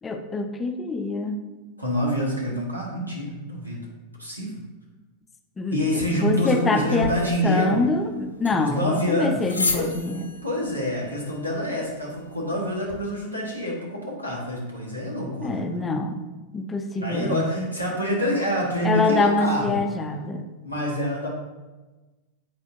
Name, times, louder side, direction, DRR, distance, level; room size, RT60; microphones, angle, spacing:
voice 1, 0.0-1.4 5.6-7.2 7.4-10.3 15.4-17.7 18.8-20.4, left 3 dB, 15° left, 6 dB, 0.5 m, -25 dB
voice 2, 1.8-3.9 4.2-4.6 5.7-7.8 8.5-9.4 9.7-9.9 10.4-15.6 17.0-19.8 20.6-21.3, equal, 90° right, -3 dB, 1.6 m, -26 dB
sound 1, 7.0-13.0, left 3 dB, 80° left, 0.6 m, -35 dB
8.4 x 4.4 x 2.7 m, 1.2 s
figure-of-eight pair, 90°, 0 cm